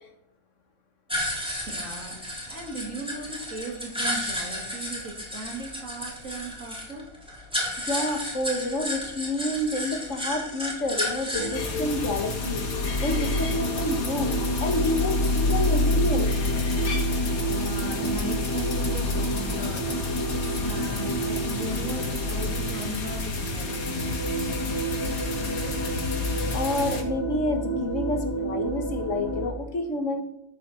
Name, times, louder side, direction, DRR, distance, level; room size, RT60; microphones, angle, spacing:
sound 1, 1.1-11.6, equal, 5° right, 3.7 m, -32 dB
voice 1, 1.7-7.0 17.4-24.0, right 2 dB, 65° right, 1 dB, 3.0 m, -37 dB
voice 2, 7.8-16.3 26.5-30.2, left 2 dB, 60° left, 6 dB, 1.7 m, -29 dB
sound 2, 11.3-29.5, equal, 20° left, 2.1 m, -28 dB
sound 3, 11.5-27.0, left 3 dB, 80° left, 2.1 m, -33 dB
13.5 x 8.5 x 4.4 m, 0.80 s
omnidirectional pair, 1.5 m